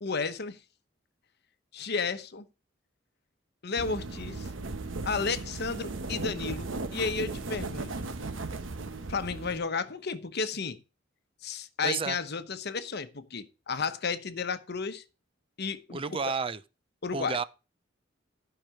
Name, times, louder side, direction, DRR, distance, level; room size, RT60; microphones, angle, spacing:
voice 1, 0.0-0.6 1.7-2.5 3.6-4.5 5.1-8.1 9.1-10.8 11.4-15.0 15.6-16.2 17.0-17.4, left 5 dB, 60° left, 1.0 m, -33 dB
sound 1, 3.8-9.6, right 3 dB, 90° right, 1.1 m, -36 dB
voice 2, 11.8-12.2 15.9-16.6 17.1-17.4, right 5 dB, 30° right, 0.5 m, -31 dB
12.0 x 5.9 x 4.8 m
head